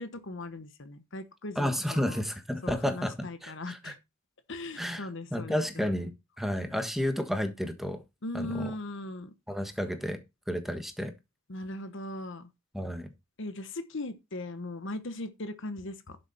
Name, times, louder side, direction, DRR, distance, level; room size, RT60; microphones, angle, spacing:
voice 1, 0.0-2.2 2.6-4.0 4.5-5.9 8.2-9.3 11.5-12.5 13.4-16.2, left 2 dB, 60° left, 1.1 m, -39 dB
voice 2, 1.5-3.9 4.8-8.0 8.3-8.7 9.5-10.2 10.5-11.1 12.7-13.1, equal, ahead, 1.4 m, -32 dB
11.5 x 6.8 x 4.1 m
head